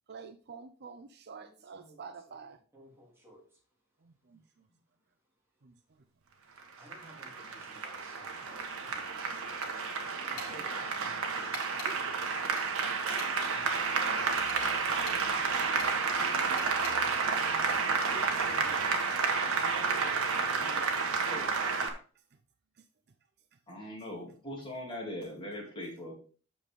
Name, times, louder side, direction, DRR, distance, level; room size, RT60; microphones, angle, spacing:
voice 1, 0.1-2.6 4.0-4.4 5.6-5.7 9.3-9.4 11.7-12.2 13.0-13.1 16.1-16.7 20.3-20.4, right 5 dB, 50° right, 0.6 m, -49 dB
voice 2, 2.7-3.4 6.8-9.9 10.2-10.8 16.4-16.6 18.1-20.1 20.4-20.9 21.3-21.5, equal, 10° right, 2.9 m, -52 dB
Applause, 6.6-21.9, right 4 dB, 70° right, 1.4 m, -31 dB
sound 1, 9.6-10.0 10.4-10.5 11.5-11.9 12.5-13.6 14.5-15.2 15.8-15.9 16.6-17.0, left 3 dB, 50° left, 4.4 m, -44 dB
voice 3, 23.7-26.1, left 1 dB, 25° left, 3.3 m, -40 dB
8.6 x 6.7 x 3.7 m
head